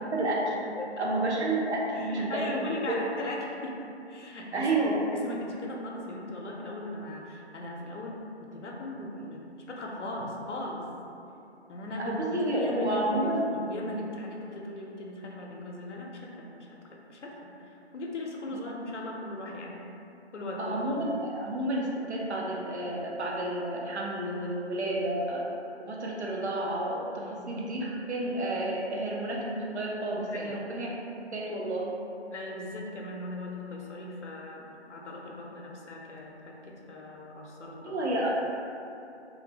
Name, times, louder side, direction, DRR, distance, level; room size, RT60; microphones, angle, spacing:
voice 1, 0.1-0.7 1.0-3.0 4.5-5.0 12.0-13.5 18.5-18.6 20.6-25.5 25.9-30.9 31.3-32.0 37.8-38.3, right 1 dB, 70° right, -3 dB, 0.6 m, -30 dB
voice 2, 0.7-1.1 1.9-3.8 4.1-4.7 5.1-10.9 11.7-16.8 17.1-19.8 20.3-20.8 27.2-27.6 30.1-30.6 32.3-38.1, left 1 dB, 85° left, -1 dB, 0.5 m, -38 dB
2.5 x 2.0 x 2.7 m, 2.7 s
figure-of-eight pair, 160°, 34 cm